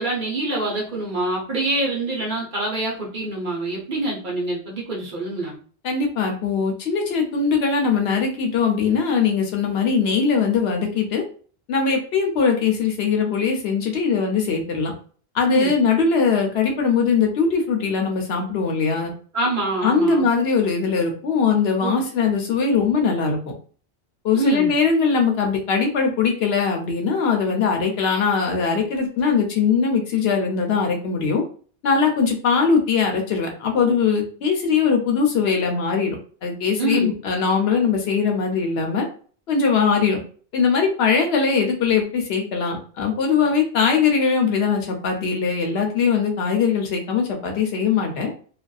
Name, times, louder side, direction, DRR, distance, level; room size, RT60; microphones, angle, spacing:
voice 1, 0.0-5.6 15.5-15.7 19.3-20.2 21.8-22.0 24.3-24.7 36.8-37.1, right 2 dB, 50° right, -3 dB, 0.9 m, -25 dB
voice 2, 5.8-11.2 11.7-14.9 15.3-19.1 19.8-23.4 24.2-31.4 31.8-36.2 36.4-39.1 39.5-40.2 40.5-48.3, left 5 dB, 65° left, 2 dB, 0.8 m, -21 dB
2.5 x 2.3 x 2.3 m, 0.42 s
omnidirectional pair, 1.2 m